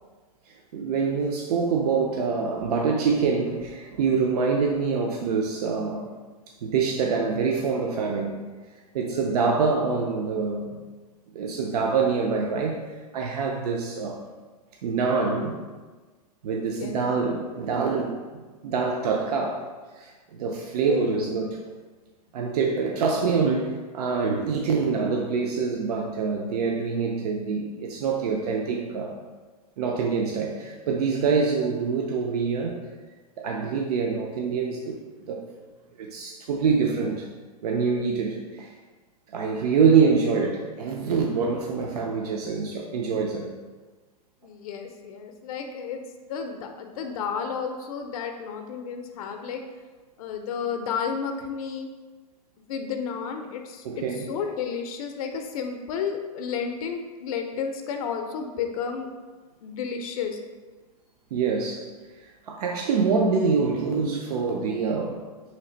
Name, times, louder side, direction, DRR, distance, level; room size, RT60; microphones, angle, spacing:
voice 1, 0.5-6.1 6.6-8.4 8.9-10.8 11.3-12.8 13.1-14.3 14.8-15.6 16.4-18.2 18.6-19.6 19.9-21.6 22.3-29.2 29.8-32.8 33.4-35.0 35.3-35.4 36.0-37.3 37.6-38.7 39.3-43.5 53.8-54.3 61.3-61.9 62.2-65.2, right 5 dB, 80° right, 0 dB, 0.5 m, -25 dB
voice 2, 20.9-21.4 44.4-46.0 46.3-49.6 50.2-51.9 52.7-59.1 59.6-60.4, left 6 dB, 65° left, 5 dB, 0.4 m, -32 dB
3.2 x 2.4 x 3.8 m, 1.3 s
supercardioid pair, 145°, 20 cm